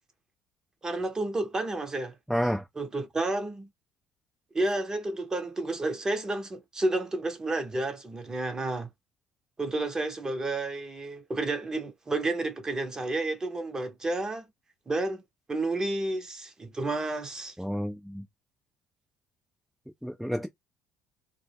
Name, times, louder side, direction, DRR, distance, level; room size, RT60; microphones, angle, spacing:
voice 1, 0.8-2.2 2.8-3.7 4.5-8.9 9.6-14.5 14.9-15.2 15.5-17.5, right 2 dB, 25° right, 0.8 m, -31 dB
voice 2, 2.3-2.7 17.6-18.3 20.0-20.5, equal, ahead, 0.4 m, -30 dB
2.1 x 2.0 x 3.3 m
hypercardioid pair, 55°, 3 cm